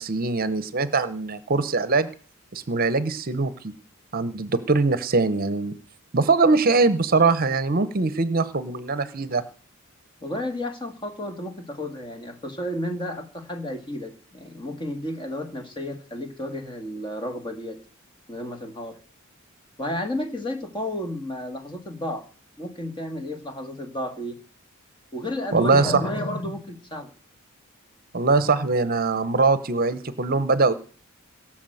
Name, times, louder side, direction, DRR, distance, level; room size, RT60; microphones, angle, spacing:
voice 1, 0.0-2.1 2.5-3.7 4.1-5.7 6.1-9.4 25.5-26.0 28.1-30.7, right 3 dB, 45° right, 14 dB, 0.8 m, -22 dB
voice 2, 10.2-17.8 18.3-19.0 19.8-22.3 22.6-24.4 25.1-27.1 28.4-28.5, left 1 dB, 25° left, 6 dB, 1.7 m, -32 dB
17.5 x 6.2 x 7.8 m, 0.42 s
head